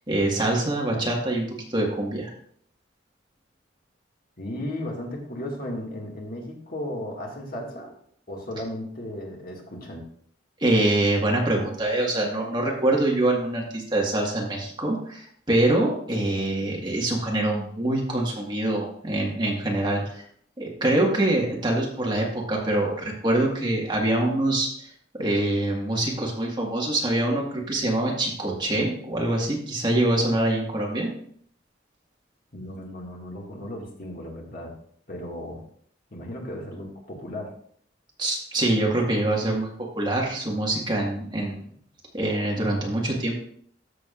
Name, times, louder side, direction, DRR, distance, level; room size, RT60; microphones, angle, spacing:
voice 1, 0.1-2.3 10.6-20.2 20.6-24.9 25.2-31.1 38.2-39.7 40.0-41.6 42.1-43.4, right 1 dB, 25° right, -2 dB, 1.8 m, -24 dB
voice 2, 4.4-7.9 8.3-10.0 32.5-34.7 35.1-35.6 36.1-37.5, left 1 dB, 50° left, -1 dB, 2.1 m, -35 dB
13.5 x 6.6 x 2.6 m, 0.63 s
head